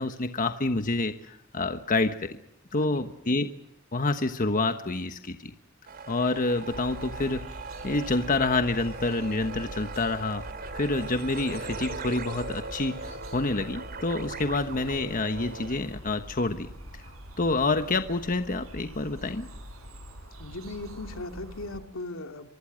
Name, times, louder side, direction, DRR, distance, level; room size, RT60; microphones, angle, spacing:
voice 1, 0.0-2.4 2.7-3.5 3.9-5.5 6.1-7.4 7.8-10.4 10.7-16.7 16.9-19.5, left 2 dB, 40° left, 8 dB, 1.2 m, -28 dB
sound 1, 5.9-15.8, right 3 dB, 45° right, 2.9 m, -40 dB
sound 2, 6.7-21.8, equal, 85° right, 6.1 m, -44 dB
voice 2, 20.4-22.5, left 2 dB, 75° left, 6 dB, 2.4 m, -38 dB
24.5 x 24.0 x 6.4 m, 0.79 s
head